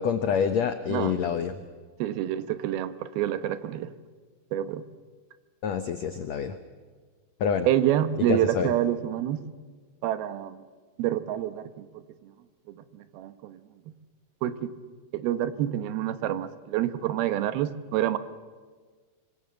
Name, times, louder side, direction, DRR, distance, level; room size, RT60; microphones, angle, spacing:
voice 1, 0.0-1.6 5.6-6.6 7.4-7.7 8.3-8.7, left 7 dB, 85° left, 9 dB, 1.5 m, -27 dB
voice 2, 2.0-3.9 4.5-4.8 7.7-9.4 10.0-10.6 11.0-11.9 12.8-13.6 14.4-14.5 15.1-18.2, right 12 dB, 75° right, 11 dB, 2.9 m, -27 dB
25.5 x 25.0 x 7.8 m, 1.5 s
omnidirectional pair, 4.6 m